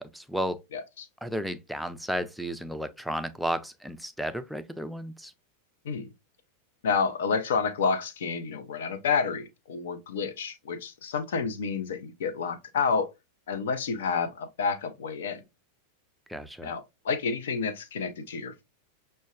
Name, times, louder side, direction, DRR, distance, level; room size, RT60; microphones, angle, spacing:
voice 1, 0.0-0.6 1.2-5.3 16.3-16.7, equal, ahead, 0.4 m, -33 dB
voice 2, 0.7-1.1 5.8-6.1 6.8-13.1 13.5-15.4 16.6-18.6, left 5 dB, 60° left, 0.5 m, -29 dB
6.2 x 2.2 x 2.3 m
figure-of-eight pair, 90°, 0 cm